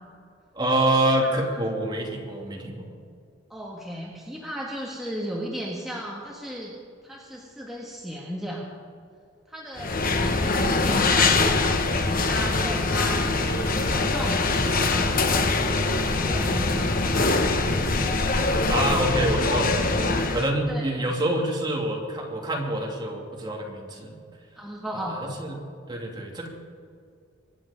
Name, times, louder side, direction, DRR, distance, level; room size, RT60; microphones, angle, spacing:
voice 1, 0.5-2.9 10.1-10.3 18.7-24.1 24.9-25.5 25.9-26.5, right 1 dB, 25° right, -1 dB, 2.7 m, -26 dB
voice 2, 3.5-6.7 7.0-8.7 9.5-11.4 11.9-15.4 15.9-17.5 20.7-21.1 24.6-25.2, equal, ahead, -3 dB, 1.6 m, -35 dB
sound 1, 9.8-20.5, left 3 dB, 45° left, 1.2 m, -23 dB
24.0 x 10.0 x 5.2 m, 2.3 s
head